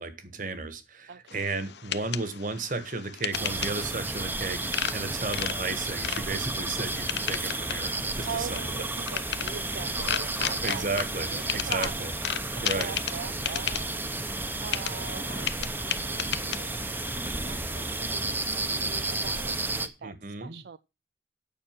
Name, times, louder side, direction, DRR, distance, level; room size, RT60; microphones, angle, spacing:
voice 1, 0.0-8.8 10.6-12.1 12.6-12.9 20.0-20.6, right 3 dB, 50° right, 1.5 m, -34 dB
voice 2, 1.1-1.5 8.2-10.9 11.2-12.1 12.5-16.8 17.4-20.8, right 6 dB, 75° right, 0.5 m, -41 dB
sound 1, 1.3-18.0, left 9 dB, 80° left, 0.8 m, -36 dB
sound 2, 3.3-19.9, right 2 dB, 10° right, 0.8 m, -32 dB
9.2 x 6.0 x 7.4 m
head